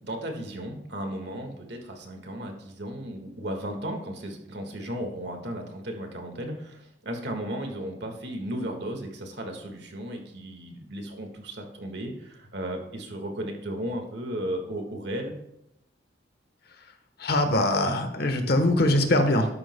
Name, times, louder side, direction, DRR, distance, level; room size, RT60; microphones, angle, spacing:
voice 1, 0.0-15.3, right 1 dB, 65° right, 3 dB, 1.7 m, -35 dB
voice 2, 17.2-19.5, left 1 dB, 60° left, 7 dB, 1.2 m, -22 dB
12.5 x 10.5 x 2.2 m, 0.84 s
head